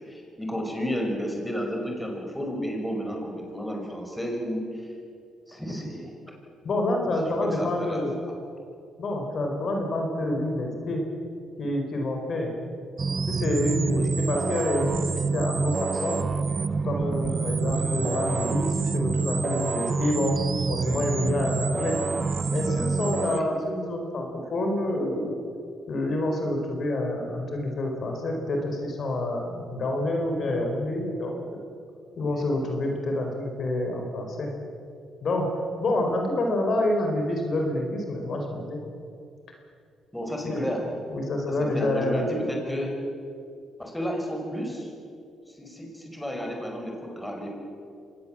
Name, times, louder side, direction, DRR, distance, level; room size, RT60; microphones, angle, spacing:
voice 1, 0.0-4.9 5.5-6.1 7.3-8.0 13.9-14.1 17.7-17.9 23.2-23.5 32.2-32.3 40.1-40.9 41.7-42.9 43.8-44.9 45.6-47.5, equal, 5° left, 1 dB, 5.5 m, -32 dB
voice 2, 6.6-8.2 9.0-11.0 11.6-12.5 13.3-16.2 16.8-20.3 20.7-22.0 22.5-25.4 25.9-31.4 32.2-34.5 35.2-38.8 40.4-40.7 41.1-42.4, left 1 dB, 55° left, 2 dB, 4.5 m, -28 dB
sound 1, 13.0-23.4, right 4 dB, 35° right, 0.6 m, -27 dB
24.5 x 19.5 x 7.5 m, 2.4 s
cardioid pair, 90°, 0 cm